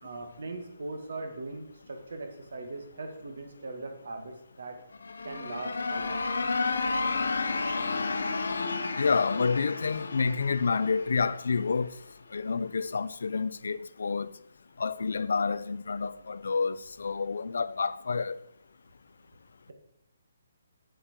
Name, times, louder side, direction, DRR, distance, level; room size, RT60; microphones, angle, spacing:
voice 1, 0.0-4.8 5.2-6.5, right 2 dB, 70° right, 1.8 m, -40 dB
sound 1, 4.9-11.7, left 3 dB, 90° left, 0.9 m, -32 dB
voice 2, 9.0-11.9 12.3-14.3 14.8-18.4, left 5 dB, 70° left, 0.4 m, -29 dB
8.2 x 7.6 x 4.5 m
hypercardioid pair, 170°, 0 cm